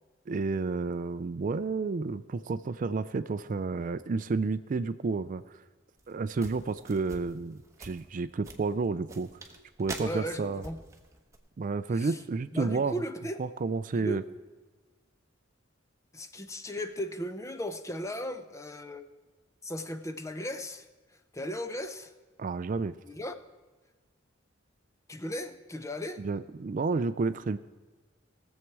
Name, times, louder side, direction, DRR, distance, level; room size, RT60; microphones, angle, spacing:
voice 1, 0.3-5.6 6.1-9.3 9.8-10.6 11.6-13.0 13.4-14.2 22.4-22.9 26.2-27.6, right 4 dB, 45° right, 13 dB, 0.4 m, -31 dB
sound 1, 6.0-11.4, right 2 dB, 15° right, 1.1 m, -45 dB
voice 2, 10.0-10.8 11.9-12.2 12.5-13.4 13.9-14.2 16.1-19.1 19.6-20.9 21.3-22.1 23.0-23.3 25.1-26.2, equal, 15° left, 9 dB, 0.6 m, -36 dB
19.5 x 7.4 x 4.7 m, 1.3 s
head